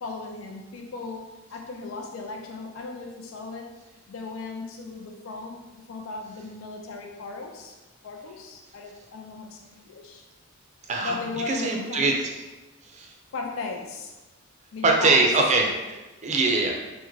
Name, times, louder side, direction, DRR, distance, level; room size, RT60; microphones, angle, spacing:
voice 1, 0.0-3.8 4.1-7.8 8.0-10.2 11.0-12.2 13.3-14.1 14.7-15.2, left 4 dB, 70° left, 2 dB, 0.4 m, -37 dB
voice 2, 11.5-12.1 12.9-13.1 14.8-16.7, right 3 dB, 35° right, 1 dB, 0.4 m, -22 dB
3.5 x 2.1 x 3.1 m, 1.1 s
head